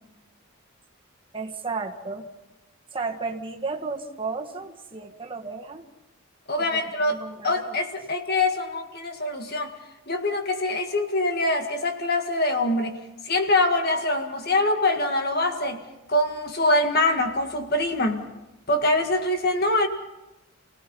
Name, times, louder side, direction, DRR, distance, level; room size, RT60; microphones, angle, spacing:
voice 1, 1.3-2.3 2.9-5.8 6.7-6.8 7.1-7.8, right 4 dB, 25° right, 1 dB, 1.8 m, -33 dB
voice 2, 6.5-7.2 7.4-9.7 10.1-13.0 13.2-15.8 16.1-18.3 18.7-19.9, left 2 dB, 45° left, 5 dB, 1.8 m, -24 dB
28.5 x 18.0 x 5.5 m, 0.99 s
head